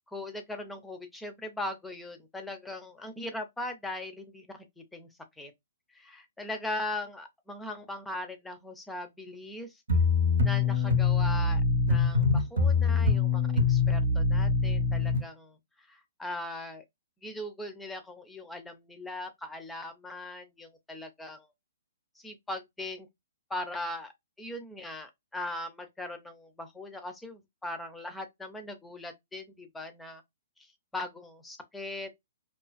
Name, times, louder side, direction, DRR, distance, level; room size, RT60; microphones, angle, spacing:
voice 1, 0.1-5.1 5.4-5.5 5.9-9.8 10.4-11.6 11.9-13.4 13.7-16.8 17.2-21.5 22.2-23.1 23.5-24.1 24.4-30.2 30.6-32.1, left 1 dB, 5° left, 0.4 m, -39 dB
sound 1, 9.9-15.2, left 4 dB, 80° right, 0.6 m, -24 dB
2.4 x 2.3 x 2.3 m
hypercardioid pair, 155°, 0 cm